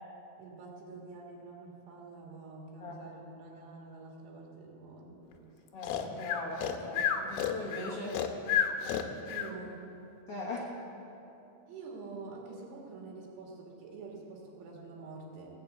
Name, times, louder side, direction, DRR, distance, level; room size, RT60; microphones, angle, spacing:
voice 1, 0.4-5.3 9.0-9.8 11.7-15.5, right 3 dB, 85° right, -2 dB, 3.9 m, -47 dB
voice 2, 5.7-8.2 10.3-10.7, left 2 dB, 60° left, -4 dB, 1.6 m, -39 dB
Breathing, 5.8-9.5, left 8 dB, 85° left, 2.7 m, -31 dB
17.5 x 6.8 x 8.0 m, 2.9 s
omnidirectional pair, 4.7 m